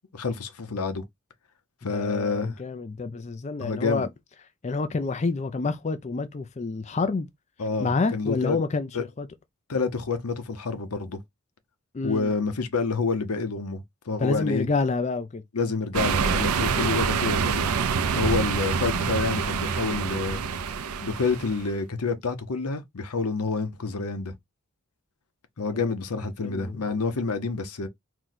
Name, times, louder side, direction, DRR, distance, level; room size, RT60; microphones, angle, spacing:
voice 1, 0.1-1.0 1.8-2.6 3.6-4.1 7.6-8.6 8.9-9.0 9.7-11.2 12.0-14.7 15.5-17.7 18.1-20.4 21.0-24.3 25.6-27.9, left 4 dB, 90° left, 0.8 m, -28 dB
voice 2, 1.9-4.1 4.6-7.3 7.8-9.3 11.9-12.3 14.2-15.4 26.4-26.8, left 3 dB, 30° left, 0.4 m, -28 dB
sound 1, 15.9-21.7, right 6 dB, 80° right, 0.5 m, -26 dB
4.5 x 2.2 x 3.9 m
head